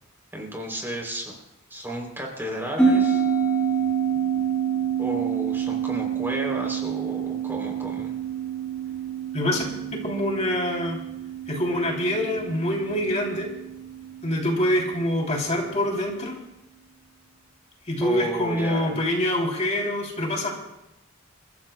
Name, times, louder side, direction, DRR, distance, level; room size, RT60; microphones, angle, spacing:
voice 1, 0.3-1.3 1.7-3.2 5.0-8.1 18.0-19.0, equal, 10° right, 0 dB, 3.3 m, -33 dB
sound 1, 2.8-15.5, right 7 dB, 5° left, 3.5 m, -28 dB
voice 2, 9.9-11.0 11.5-13.5 14.2-16.3 17.9-20.5, left 1 dB, 35° left, -1 dB, 3.1 m, -25 dB
29.0 x 14.5 x 2.3 m, 0.89 s
head